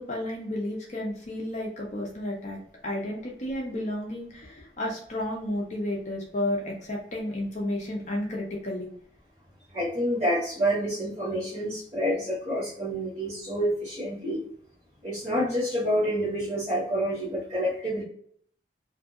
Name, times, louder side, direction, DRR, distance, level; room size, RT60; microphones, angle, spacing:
voice 1, 0.0-2.6 2.8-8.9, left 1 dB, 40° left, -1 dB, 0.5 m, -32 dB
voice 2, 9.7-14.4 15.0-18.0, equal, 35° right, -13 dB, 1.2 m, -28 dB
2.6 x 2.5 x 2.4 m, 0.63 s
head